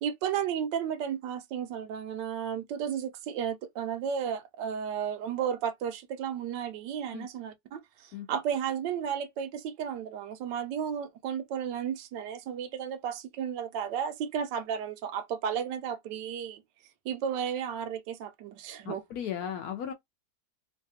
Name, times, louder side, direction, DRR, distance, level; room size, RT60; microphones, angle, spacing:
voice 1, 0.0-16.6 17.0-19.0, right 8 dB, 80° right, 1.2 m, -33 dB
voice 2, 18.8-19.9, left 9 dB, 70° left, 0.9 m, -36 dB
3.2 x 2.3 x 2.7 m
omnidirectional pair, 1.9 m